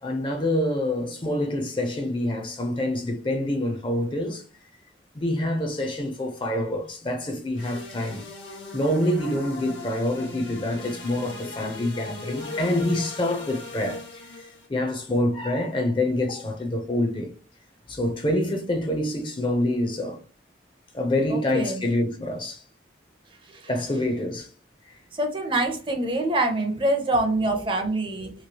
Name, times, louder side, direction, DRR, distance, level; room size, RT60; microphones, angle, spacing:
voice 1, 0.0-4.4 5.1-8.3 8.7-14.0 14.7-17.3 17.9-20.2 20.9-22.6 23.7-24.5, left 1 dB, 25° left, 0.5 m, -26 dB
sound 1, 7.6-14.7, left 2 dB, 85° left, 0.9 m, -39 dB
voice 2, 21.3-21.8 23.5-23.6 25.1-28.3, right 2 dB, 25° right, 0.5 m, -25 dB
3.0 x 2.4 x 2.8 m
head